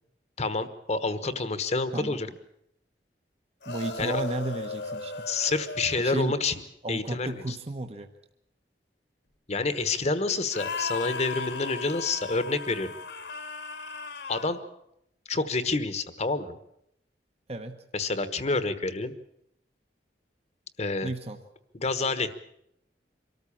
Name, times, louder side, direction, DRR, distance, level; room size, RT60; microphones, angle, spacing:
voice 1, 0.4-2.3 4.0-4.2 5.3-6.5 6.9-7.5 9.5-12.9 14.3-14.6 15.3-16.6 17.9-19.1 20.8-21.1 21.7-22.3, left 3 dB, 40° left, 12 dB, 1.2 m, -28 dB
sound 1, 3.6-6.4 10.5-14.6, left 4 dB, 75° left, 2.2 m, -36 dB
voice 2, 3.7-5.3 6.0-6.4 6.8-8.1 17.5-17.8 21.0-21.4, right 2 dB, 35° right, 6 dB, 1.0 m, -33 dB
24.0 x 13.5 x 8.6 m, 0.78 s
head